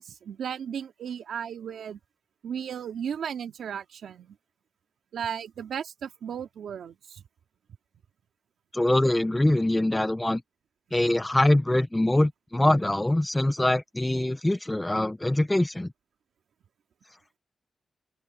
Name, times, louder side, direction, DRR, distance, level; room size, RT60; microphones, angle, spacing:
voice 1, 0.0-2.0 2.4-4.4 5.1-7.2, right 8 dB, 85° right, 2.6 m, -35 dB
voice 2, 8.7-10.4 10.9-15.9, left 1 dB, 10° left, 0.6 m, -23 dB
open air
cardioid pair, 100°, 0 cm